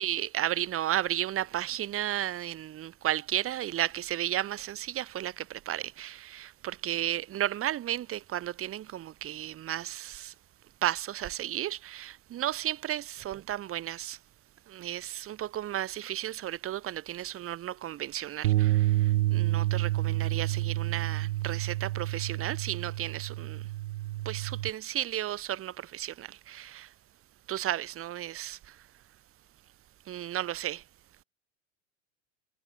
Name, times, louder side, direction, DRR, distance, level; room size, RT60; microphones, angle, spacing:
voice 1, 0.0-10.3 10.8-14.2 14.7-23.7 24.2-26.9 27.5-28.9 30.0-30.8, right 12 dB, 35° right, 2.8 m, -33 dB
sound 1, 18.4-24.7, right 16 dB, 90° right, 0.5 m, -29 dB
hypercardioid pair, 105°, 37 cm